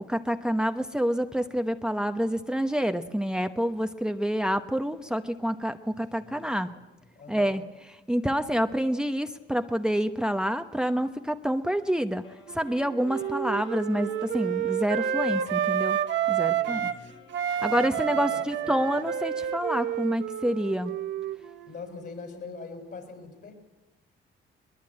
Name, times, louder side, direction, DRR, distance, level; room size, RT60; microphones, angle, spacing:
voice 1, 0.0-6.7 7.3-7.6 8.1-12.2 12.5-16.0 16.3-16.9 17.5-20.9, equal, 5° right, 8 dB, 0.9 m, -27 dB
voice 2, 7.1-7.7 16.4-17.2 17.6-19.0 21.7-23.5, left 4 dB, 55° left, 4 dB, 6.3 m, -43 dB
Wind instrument woodwind instrument, 12.2-16.4 16.7-19.6, left 4 dB, 80° left, 6.6 m, -53 dB
Wind instrument woodwind instrument 2, 12.5-17.0 17.3-21.8, right 9 dB, 70° right, 1.1 m, -29 dB
22.5 x 21.0 x 8.7 m, 1.0 s
cardioid pair, 90°, 20 cm